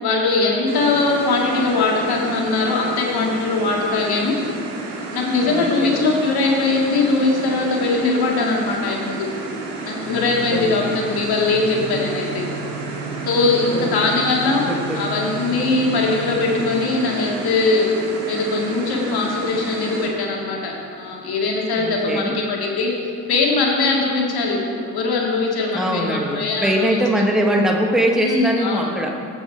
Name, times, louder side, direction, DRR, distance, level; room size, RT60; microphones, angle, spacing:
voice 1, 0.0-4.4 5.1-9.3 9.9-12.5 13.3-14.7 14.9-17.9 18.3-27.0 28.2-28.9, left 3 dB, 50° left, -1 dB, 2.0 m, -21 dB
sound 1, 0.7-20.1, right 3 dB, 55° right, 1.7 m, -31 dB
voice 2, 5.5-6.1 10.5-11.0 13.7-14.3 14.7-15.1 21.8-22.4 25.7-29.2, equal, ahead, 1 dB, 1.3 m, -22 dB
sound 2, 10.0-16.6, right 4 dB, 70° left, 2.3 m, -34 dB
14.5 x 6.3 x 3.4 m, 2.6 s
figure-of-eight pair, 45°, 47 cm